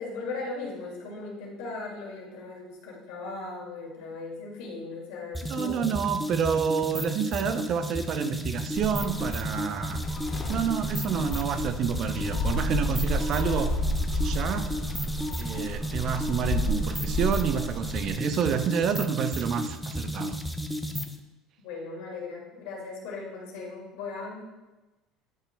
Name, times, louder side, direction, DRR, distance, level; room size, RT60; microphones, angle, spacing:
voice 1, 0.0-5.9 21.6-24.4, left 3 dB, 75° left, -3 dB, 2.2 m, -38 dB
sound 1, 5.3-21.2, equal, ahead, 0.6 m, -33 dB
voice 2, 5.5-10.0 10.5-13.7 14.1-14.8 15.4-20.4, right 7 dB, 55° right, 10 dB, 0.5 m, -29 dB
Gull seagull, 8.8-18.1, left 1 dB, 40° left, 1.1 m, -31 dB
10.5 x 5.1 x 2.2 m, 1.1 s
supercardioid pair, 85°, 0 cm